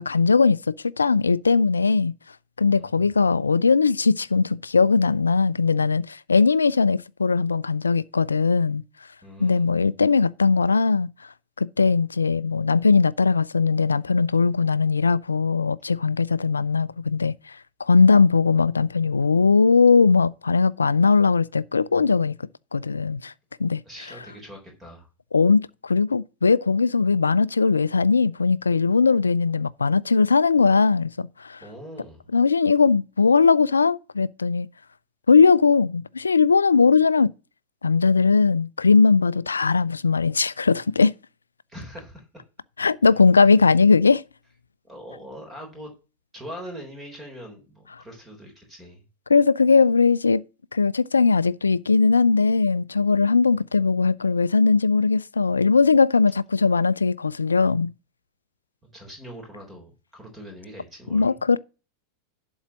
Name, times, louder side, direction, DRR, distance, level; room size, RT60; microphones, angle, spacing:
voice 1, 0.0-2.1 2.6-8.8 9.4-11.1 11.6-17.3 17.8-22.3 22.7-23.3 23.6-23.8 25.3-31.6 32.3-34.7 35.3-37.3 37.8-41.1 42.8-44.2 49.3-50.4 50.7-57.9 61.1-61.6, left 4 dB, 75° left, 0.4 m, -19 dB
voice 2, 2.7-3.1 9.2-9.6 23.8-25.1 31.6-32.3 41.7-42.4 44.8-45.9 46.3-49.0 58.8-61.4, equal, 15° right, 3.9 m, -42 dB
11.5 x 4.0 x 7.3 m
figure-of-eight pair, 90°, 0 cm